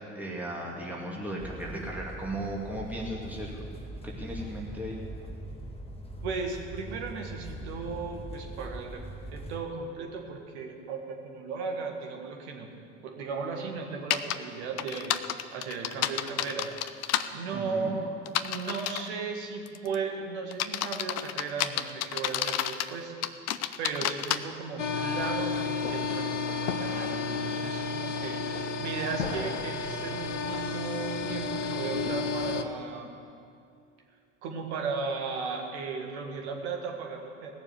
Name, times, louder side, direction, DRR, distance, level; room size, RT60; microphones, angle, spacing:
voice 1, 0.1-3.6 4.0-5.0 17.5-18.0, right 1 dB, 5° right, -3 dB, 2.4 m, -36 dB
sound 1, 1.4-9.6, right 1 dB, 15° left, 1.5 m, -41 dB
voice 2, 6.2-9.0 9.3-12.7 13.0-16.7 17.3-18.1 18.4-23.1 23.8-33.1 34.4-37.5, right 5 dB, 65° right, 2 dB, 1.8 m, -36 dB
sound 2, 14.1-14.4 14.8-17.3 18.3-19.1 19.7-20.0 20.5-22.9 23.2-24.4, left 12 dB, 45° left, 0.6 m, -30 dB
sound 3, 24.8-32.6, left 4 dB, 85° left, 0.7 m, -32 dB
18.0 x 7.1 x 8.1 m, 2.4 s
figure-of-eight pair, 60°, 36 cm